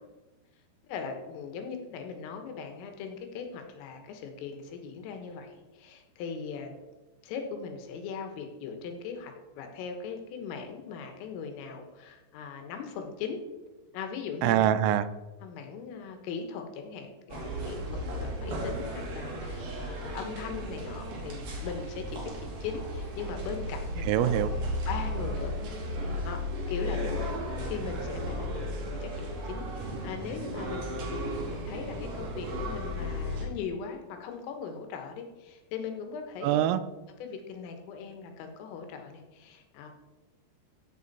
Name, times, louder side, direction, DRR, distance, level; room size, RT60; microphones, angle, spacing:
voice 1, 0.9-6.7 7.2-13.4 13.9-14.7 15.4-24.3 24.9-25.5 26.2-26.4 26.7-27.4 27.7-36.6 37.2-39.9, left 6 dB, 80° left, 5 dB, 3.9 m, -39 dB
voice 2, 14.4-15.1 24.0-24.5 36.4-36.8, right 11 dB, 85° right, 13 dB, 3.3 m, -24 dB
sound 1, 17.3-33.5, equal, 55° right, 3.8 m, -35 dB
15.5 x 7.5 x 4.2 m, 1.1 s
omnidirectional pair, 5.8 m